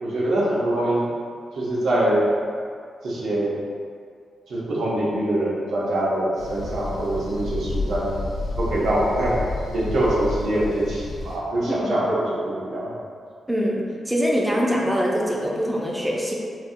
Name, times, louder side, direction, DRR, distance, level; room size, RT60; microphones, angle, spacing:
voice 1, 0.0-1.1 1.5-2.4 3.0-3.5 4.5-8.2 8.6-9.4 9.7-12.9, right 1 dB, 65° right, -6 dB, 0.7 m, -24 dB
sound 1, 6.4-11.4, left 2 dB, 70° left, 0.4 m, -30 dB
voice 2, 13.5-16.3, equal, 5° right, -3 dB, 0.4 m, -23 dB
4.0 x 2.1 x 2.5 m, 2.2 s
wide cardioid pair, 170°, 0 cm